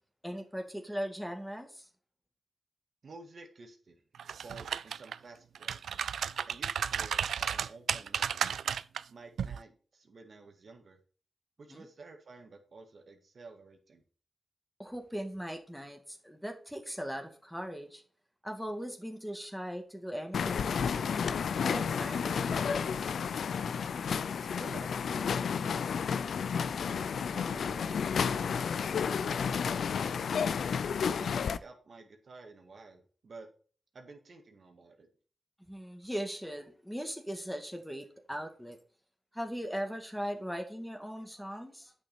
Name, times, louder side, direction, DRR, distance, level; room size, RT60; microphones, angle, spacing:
voice 1, 0.2-1.9 11.7-11.9 14.8-18.0 18.4-21.1 21.6-23.0 35.7-38.8 39.3-41.9, equal, ahead, 4 dB, 1.9 m, -39 dB
voice 2, 3.0-4.0 4.4-5.8 6.5-8.5 9.1-11.0 11.6-14.0 24.4-26.2 26.9-30.4 31.0-33.5 33.9-35.1, right 3 dB, 60° right, 4 dB, 1.8 m, -52 dB
sound 1, 4.2-5.2 5.6-9.0 9.4-9.6, right 8 dB, 90° right, 0.3 m, -33 dB
sound 2, 20.3-31.6, left 6 dB, 80° left, 0.5 m, -31 dB
8.7 x 6.1 x 4.3 m, 0.41 s
cardioid pair, 70°, 0 cm